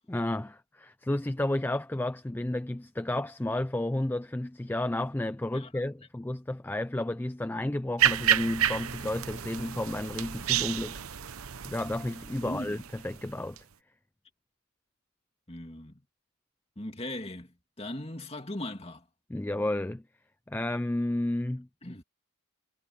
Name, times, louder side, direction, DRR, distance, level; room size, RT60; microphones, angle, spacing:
voice 1, 0.1-11.0 11.6-13.6 19.3-20.0 20.5-21.7, left 1 dB, 10° left, 0.3 m, -32 dB
sound 1, 8.0-13.6, right 10 dB, 80° right, 0.9 m, -30 dB
voice 2, 12.4-12.8 15.5-16.0 16.8-19.0 21.8-22.0, left 1 dB, 25° left, 2.6 m, -39 dB
head